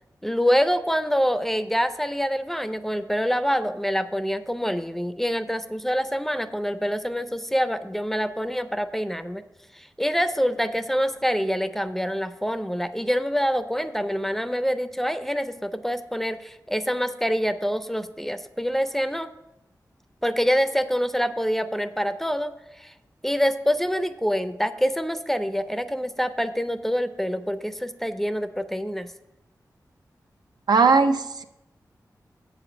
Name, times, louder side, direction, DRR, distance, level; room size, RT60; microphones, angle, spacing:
voice 1, 0.2-9.4 9.7-19.3 20.2-22.5 22.8-22.9 23.2-29.1, equal, 5° left, 11 dB, 0.4 m, -26 dB
voice 2, 30.7-31.4, right 4 dB, 85° right, 8 dB, 0.5 m, -18 dB
7.8 x 5.0 x 6.9 m, 0.92 s
wide cardioid pair, 100°, 7 cm